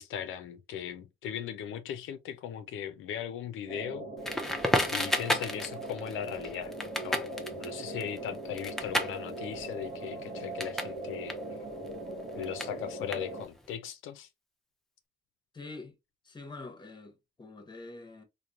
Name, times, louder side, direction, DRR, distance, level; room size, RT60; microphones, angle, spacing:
voice 1, 0.0-4.1 4.9-6.7 7.0-11.4 12.4-14.3, left 9 dB, 85° left, 0.5 m, -38 dB
sound 1, 3.7-13.5, right 1 dB, 60° right, 1.0 m, -40 dB
Crackle, 4.2-11.0 11.2-13.7, equal, ahead, 0.5 m, -33 dB
voice 2, 15.5-15.9 16.2-18.2, left 3 dB, 20° left, 0.8 m, -45 dB
2.9 x 2.1 x 2.4 m
cardioid pair, 90°, 20 cm